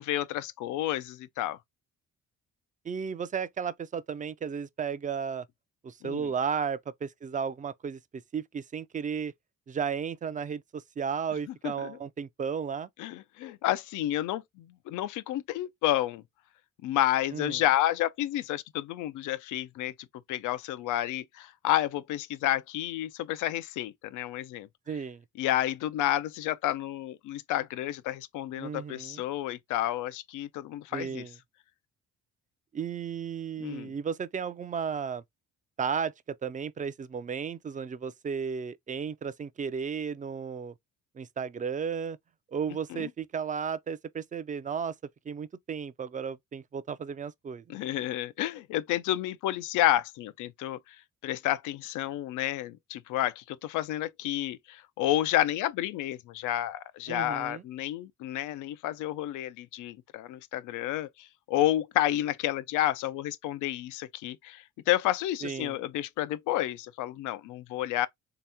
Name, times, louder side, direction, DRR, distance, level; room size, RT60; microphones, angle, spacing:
voice 1, 0.0-1.6 6.0-6.3 11.5-12.0 13.0-16.2 16.8-19.9 20.3-24.7 25.4-31.2 33.6-33.9 42.9-43.1 47.7-51.0 51.2-68.1, left 13 dB, 85° left, 0.5 m, -30 dB
voice 2, 2.8-5.5 5.8-9.3 9.7-12.9 17.3-17.6 24.9-25.2 28.6-29.2 30.9-31.3 32.7-35.2 35.8-40.7 41.2-42.2 42.5-45.0 45.3-47.6 57.1-57.6 65.4-65.8, right 6 dB, 25° right, 0.4 m, -34 dB
3.4 x 2.9 x 3.3 m
cardioid pair, 90°, 30 cm